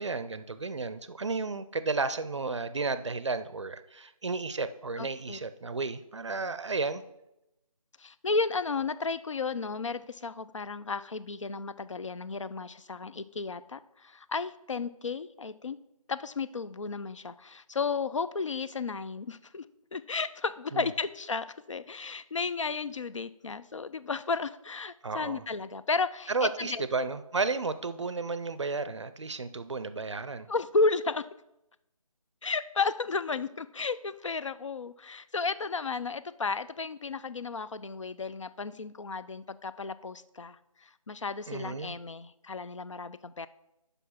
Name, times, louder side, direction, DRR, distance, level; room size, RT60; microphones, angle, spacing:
voice 1, 0.0-7.0 20.7-20.9 25.0-25.4 26.3-30.5 41.5-41.9, right 3 dB, 55° right, 13 dB, 0.5 m, -33 dB
voice 2, 5.0-5.4 8.0-15.8 16.1-19.6 19.9-26.8 30.5-31.2 32.4-43.5, left 4 dB, 55° left, 14 dB, 0.4 m, -33 dB
6.2 x 5.5 x 5.6 m, 0.87 s
figure-of-eight pair, 165°, 19 cm